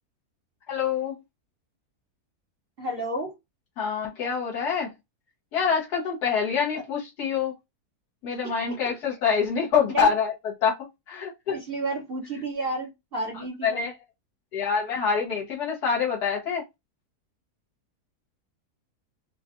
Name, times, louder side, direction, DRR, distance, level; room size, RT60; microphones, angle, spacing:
voice 1, 0.7-1.1 3.8-4.9 5.5-7.5 8.2-10.3 10.6-10.8 11.1-11.6 13.6-13.9 14.5-16.6, left 6 dB, 75° left, 1.5 m, -25 dB
voice 2, 2.8-3.4 6.7-6.8 8.3-9.0 9.9-10.1 11.5-13.9, right 1 dB, 45° right, 0.8 m, -32 dB
3.9 x 2.2 x 2.4 m
omnidirectional pair, 1.7 m